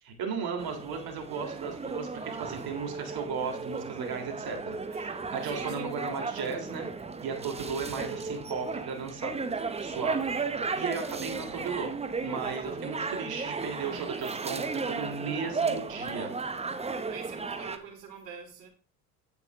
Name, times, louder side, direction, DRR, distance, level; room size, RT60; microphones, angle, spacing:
voice 1, 0.0-6.9 7.2-10.3 10.7-11.9 12.2-16.3, right 5 dB, 45° right, 3.4 m, -36 dB
sound 1, 0.6-17.8, right 4 dB, 15° right, 0.8 m, -35 dB
voice 2, 5.5-5.9 17.1-18.7, right 6 dB, 75° right, 3.3 m, -44 dB
9.0 x 8.3 x 3.5 m
hypercardioid pair, 75°, 49 cm